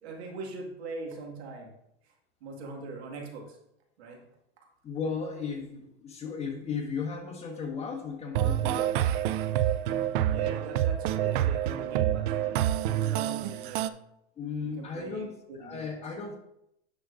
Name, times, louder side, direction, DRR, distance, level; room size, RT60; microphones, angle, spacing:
voice 1, 0.0-1.7 2.0-2.1 2.4-3.6 4.0-4.2 10.2-14.0 14.6-15.8, right 3 dB, 75° right, 0 dB, 2.0 m, -42 dB
voice 2, 4.8-9.0 14.4-16.4, left 5 dB, 20° left, 1 dB, 1.4 m, -35 dB
sound 1, 8.3-13.9, right 11 dB, 55° right, 0.4 m, -27 dB
8.9 x 6.2 x 2.6 m, 0.80 s
hypercardioid pair, 130°, 33 cm